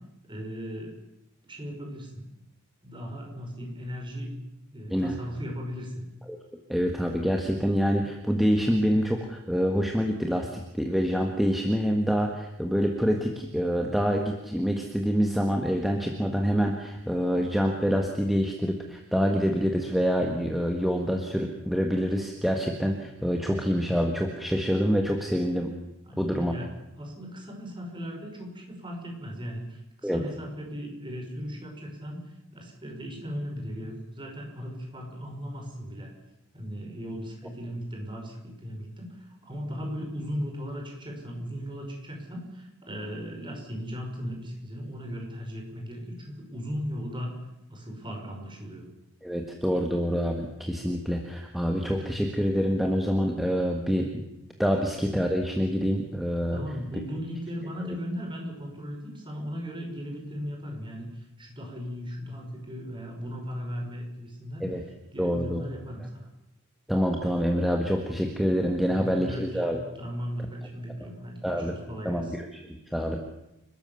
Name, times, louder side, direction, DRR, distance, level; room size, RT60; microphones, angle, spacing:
voice 1, 0.3-0.9 1.4-2.2 2.8-4.3 4.7-6.0 26.1-26.7 27.0-36.1 36.5-47.3 47.7-48.9 56.5-64.7 65.1-66.3 68.8-72.4, equal, 20° right, 1 dB, 5.4 m, -37 dB
voice 2, 6.7-25.7 26.2-26.5 30.0-30.2 49.2-54.2 54.6-56.6 64.6-64.8 65.2-65.6 66.9-69.8 71.0-71.1 71.4-71.7 72.1-73.2, equal, ahead, 2 dB, 1.7 m, -26 dB
29.5 x 13.5 x 7.1 m, 0.88 s
head